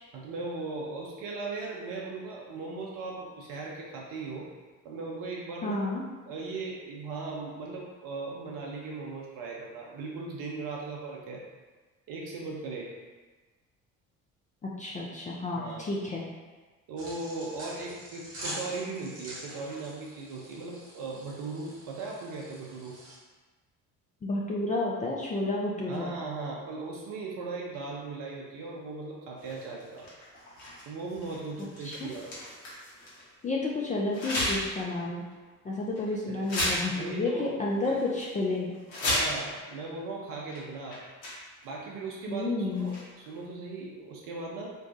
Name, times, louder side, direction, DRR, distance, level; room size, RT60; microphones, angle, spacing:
voice 1, 0.1-4.5 4.8-5.8 6.3-11.4 12.1-12.9 15.5-15.9 16.9-23.0 25.9-30.1 30.9-32.3 36.3-36.4 36.9-37.6 37.9-38.0 39.0-41.0 41.6-42.5 42.8-44.7, right 3 dB, 50° right, -3 dB, 0.6 m, -38 dB
voice 2, 5.6-6.0 14.8-16.2 24.2-26.1 31.8-32.1 33.4-35.2 35.6-38.7 42.3-42.9, left 2 dB, 20° left, -4 dB, 0.4 m, -31 dB
sound 1, 17.0-23.2, right 1 dB, 80° right, 1.1 m, -44 dB
sound 2, 29.4-33.3 34.1-34.8 35.2-35.3 36.0-36.1 36.4-37.2 37.5-37.6 37.8-38.3 38.7-39.6 40.5-40.6 40.9-41.7 42.7-43.3, left 1 dB, 75° left, 1.1 m, -34 dB
3.9 x 2.3 x 2.5 m, 1.3 s
figure-of-eight pair, 50°, 42 cm